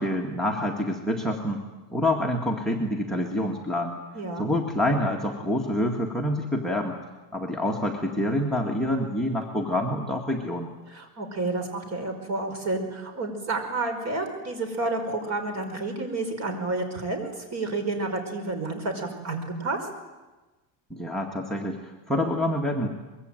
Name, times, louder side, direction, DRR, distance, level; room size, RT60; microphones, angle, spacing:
voice 1, 0.0-1.6 1.9-4.0 4.4-7.0 7.3-10.7 20.9-22.9, left 1 dB, ahead, 2 dB, 1.9 m, -27 dB
voice 2, 4.1-4.5 10.9-19.8, right 2 dB, 35° right, 6 dB, 5.2 m, -30 dB
24.0 x 22.5 x 9.1 m, 1.2 s
cardioid pair, 160°, 44 cm